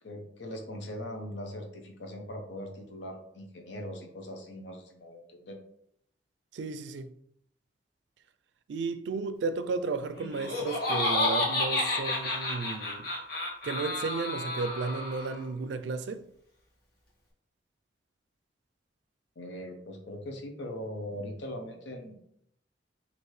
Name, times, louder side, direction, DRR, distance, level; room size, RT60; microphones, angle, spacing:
voice 1, 0.0-5.6 19.4-22.1, left 1 dB, 85° left, 0.8 m, -40 dB
voice 2, 6.5-7.1 8.7-13.1 13.6-16.2, right 4 dB, 80° right, 0.4 m, -33 dB
Laughter, 10.2-15.4, left 2 dB, 55° left, 1.3 m, -31 dB
4.5 x 2.7 x 3.2 m
head